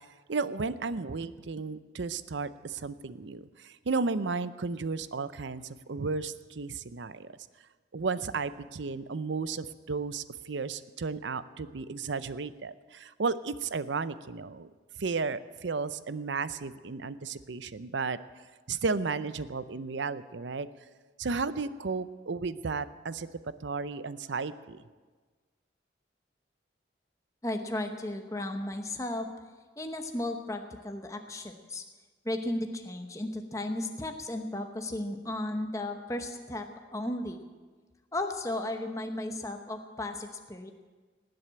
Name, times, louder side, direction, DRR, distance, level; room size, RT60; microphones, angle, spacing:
voice 1, 0.3-7.3 7.9-14.7 15.0-18.2 18.7-20.7 21.2-23.3 23.6-24.8, right 4 dB, 75° right, 15 dB, 0.6 m, -33 dB
voice 2, 27.4-29.3 29.8-31.8 32.2-36.7 36.9-37.4 38.1-40.7, left 1 dB, 15° left, 5 dB, 0.9 m, -34 dB
19.0 x 7.8 x 8.8 m, 1.4 s
head